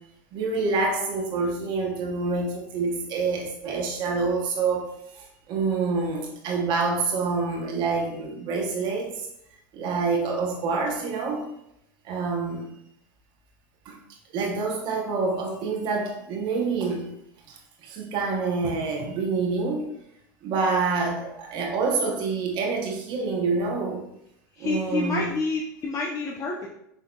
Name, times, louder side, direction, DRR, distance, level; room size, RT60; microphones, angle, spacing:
voice 1, 0.3-4.9 5.5-9.1 9.7-11.4 12.1-12.6 13.9-14.0 14.3-17.1 17.8-19.9 20.4-24.0 24.6-25.3, right 4 dB, 45° right, 1 dB, 0.8 m, -27 dB
voice 2, 24.6-26.7, left 3 dB, 30° left, -1 dB, 0.6 m, -28 dB
5.7 x 2.8 x 2.2 m, 0.78 s
hypercardioid pair, 105°, 11 cm